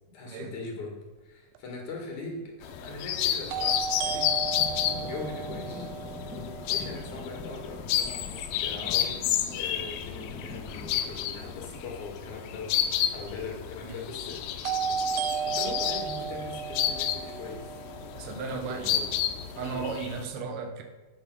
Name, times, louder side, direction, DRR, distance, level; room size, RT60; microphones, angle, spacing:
voice 1, 0.1-5.9 6.6-9.2 9.5-14.4 14.7-14.9 15.4-17.7 18.2-19.1 19.5-19.8, left 3 dB, 65° left, -1 dB, 3.3 m, -41 dB
sound 1, 1.5-1.6 3.5-7.4 14.6-18.7, right 7 dB, 80° right, 1.8 m, -34 dB
sound 2, 2.6-20.2, left 10 dB, 90° left, 2.3 m, -31 dB
sound 3, 3.2-12.0, left 3 dB, ahead, 1.6 m, -43 dB
voice 2, 18.1-19.1 19.6-20.8, right 4 dB, 65° right, 5 dB, 1.5 m, -35 dB
8.7 x 6.5 x 6.0 m, 1.3 s
omnidirectional pair, 3.7 m